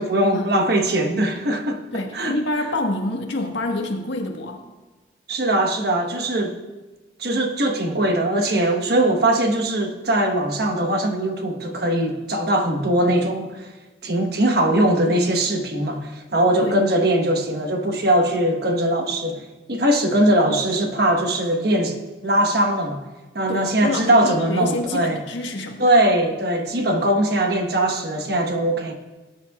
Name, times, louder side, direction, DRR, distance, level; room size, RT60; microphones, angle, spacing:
voice 1, 0.0-2.4 5.3-6.6 7.2-13.7 14.0-22.0 22.2-23.0 23.3-25.2 25.8-28.9, right 1 dB, 55° right, 1.2 m, -21 dB
voice 2, 1.9-4.6 16.6-16.8 23.5-25.9, left 2 dB, 75° left, 1.4 m, -27 dB
19.5 x 9.9 x 2.4 m
head